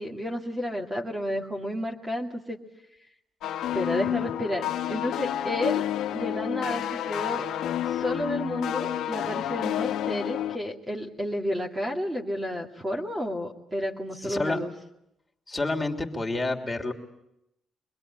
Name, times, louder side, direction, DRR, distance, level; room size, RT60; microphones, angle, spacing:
voice 1, 0.0-2.6 3.7-5.8 6.1-7.5 7.8-14.7, left 1 dB, 15° right, 0 dB, 2.5 m, -31 dB
sound 1, 3.4-10.6, left 11 dB, 80° left, 0.9 m, -29 dB
voice 2, 14.2-14.6 15.5-16.9, left 2 dB, 15° left, 1 dB, 3.1 m, -29 dB
25.0 x 21.0 x 8.9 m, 0.83 s
cardioid pair, 90°, 0 cm